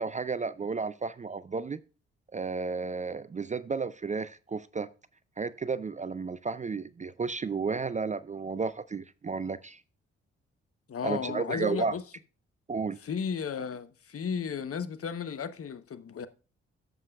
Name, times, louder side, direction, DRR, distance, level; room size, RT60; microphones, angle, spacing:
voice 1, 0.0-1.8 2.3-4.9 5.4-9.8 11.0-11.9 12.7-13.0, right 4 dB, 25° right, 0.5 m, -32 dB
voice 2, 10.9-12.0 13.0-16.3, left 7 dB, 45° left, 1.0 m, -34 dB
12.0 x 7.6 x 2.4 m
hypercardioid pair, 40°, 32 cm